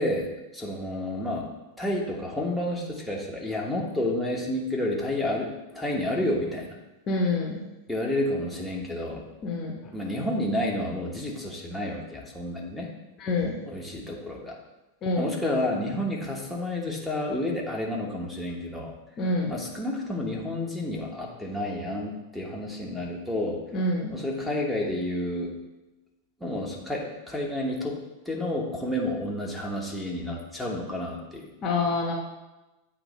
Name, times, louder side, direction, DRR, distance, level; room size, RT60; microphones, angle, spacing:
voice 1, 0.0-1.5 1.8-6.7 7.9-9.2 9.9-12.9 13.6-14.6 15.2-19.0 19.5-23.6 24.1-25.6 26.4-28.0 28.2-31.5, left 1 dB, ahead, -4 dB, 1.1 m, -30 dB
voice 2, 7.1-7.6 9.4-9.8 13.2-13.5 15.0-15.3 19.2-19.5 23.7-24.1 31.6-32.1, left 2 dB, 30° left, -1 dB, 0.9 m, -26 dB
8.0 x 2.9 x 4.1 m, 1.0 s
figure-of-eight pair, 90°, 0 cm